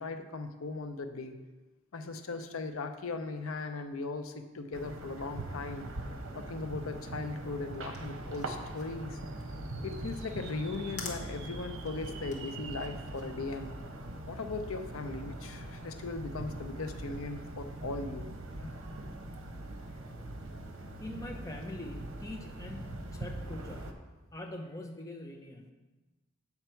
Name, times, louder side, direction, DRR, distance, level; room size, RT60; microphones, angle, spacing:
voice 1, 0.0-1.3 1.9-5.9 6.3-9.2 9.8-13.7 14.3-18.3 18.6-18.7, left 3 dB, 85° left, 7 dB, 0.6 m, -38 dB
sound 1, 4.7-23.9, right 1 dB, 70° right, 0.8 m, -42 dB
sound 2, 7.9-14.4, left 4 dB, 35° left, 1.1 m, -49 dB
voice 2, 21.0-23.9 24.3-25.7, left 1 dB, 15° left, 1 dB, 0.7 m, -43 dB
8.0 x 5.8 x 4.5 m, 1.2 s
head